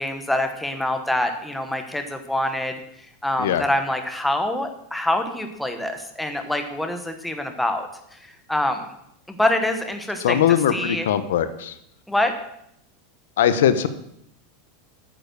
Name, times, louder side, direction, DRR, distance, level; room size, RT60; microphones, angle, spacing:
voice 1, 0.0-2.7 3.2-7.9 8.5-8.9 9.3-10.4 10.7-11.1 12.1-12.3, left 1 dB, 5° left, 6 dB, 0.9 m, -25 dB
voice 2, 10.2-11.7 13.4-13.9, left 9 dB, 90° left, 13 dB, 0.8 m, -20 dB
9.0 x 7.4 x 6.7 m, 0.75 s
supercardioid pair, 165°, 0 cm